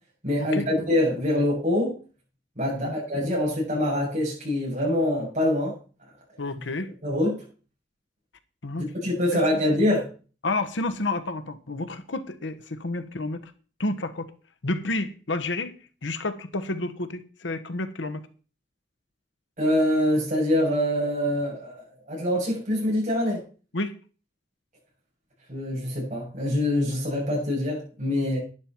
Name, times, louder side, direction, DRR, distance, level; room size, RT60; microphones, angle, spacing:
voice 1, 0.2-2.0 2.6-5.7 7.0-7.4 8.8-10.1 19.6-23.4 25.5-28.4, left 1 dB, 40° right, 7.6 m, -25 dB
voice 2, 6.4-6.9 8.6-8.9 9.3-9.4 10.4-13.5 13.8-14.3 14.6-15.7 16.0-18.3 23.7-24.0, left 2 dB, 85° left, 1.1 m, -30 dB
11.0 x 11.0 x 4.5 m
head